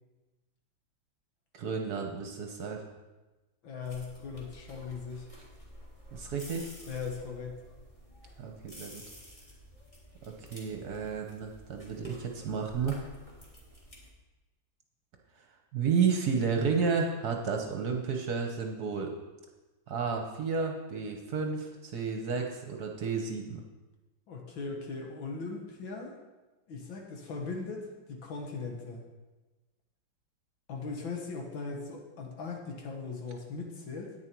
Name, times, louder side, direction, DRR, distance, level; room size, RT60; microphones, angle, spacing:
voice 1, 1.5-2.9 6.1-6.7 8.4-9.0 10.5-13.0 15.7-19.1 19.9-23.6, right 5 dB, 55° right, 3 dB, 1.3 m, -31 dB
voice 2, 3.6-5.3 6.9-7.6 24.3-26.1 26.7-29.0 30.7-34.1, left 4 dB, 70° left, 1 dB, 2.2 m, -39 dB
sound 1, 3.8-14.1, equal, 15° left, 1.7 m, -51 dB
10.5 x 9.1 x 4.6 m, 1.1 s
omnidirectional pair, 2.2 m